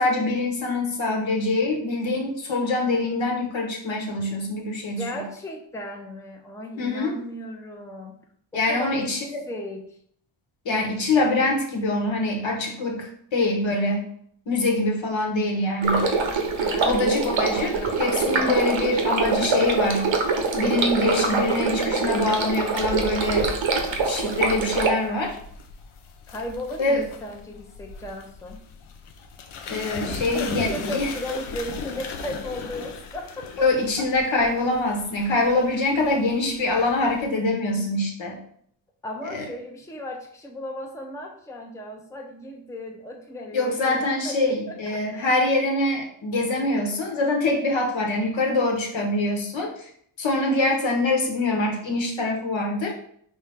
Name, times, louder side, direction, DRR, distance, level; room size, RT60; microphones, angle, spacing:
voice 1, 0.0-5.2 6.8-7.1 8.5-9.4 10.6-14.0 14.5-16.1 16.9-20.1 20.5-23.5 24.0-25.4 26.8-27.1 29.7-31.1 33.6-38.4 39.3-39.4 43.5-49.9 50.2-52.9, left 2 dB, 70° left, 1 dB, 1.2 m, -24 dB
voice 2, 5.0-8.2 8.5-10.0 16.6-18.5 26.3-28.6 30.1-33.7 34.0-34.1 39.0-45.3, left 1 dB, 5° left, 2 dB, 0.6 m, -36 dB
Stream, 15.8-24.9, right 4 dB, 70° right, 0.9 m, -24 dB
sound 1, 22.8-37.2, left 5 dB, 85° left, 0.7 m, -38 dB
4.4 x 2.8 x 3.5 m, 0.64 s
cardioid pair, 70°, 48 cm